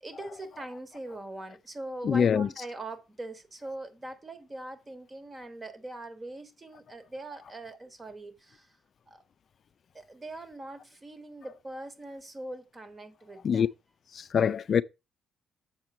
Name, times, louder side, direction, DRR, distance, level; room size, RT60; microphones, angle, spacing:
voice 1, 0.0-8.8 9.1-9.2 9.9-13.7, right 2 dB, 25° right, 1.5 m, -42 dB
voice 2, 2.0-2.5 13.4-13.7 14.1-14.8, left 7 dB, 55° left, 0.3 m, -24 dB
7.3 x 4.5 x 5.3 m
cardioid pair, 90°, 0 cm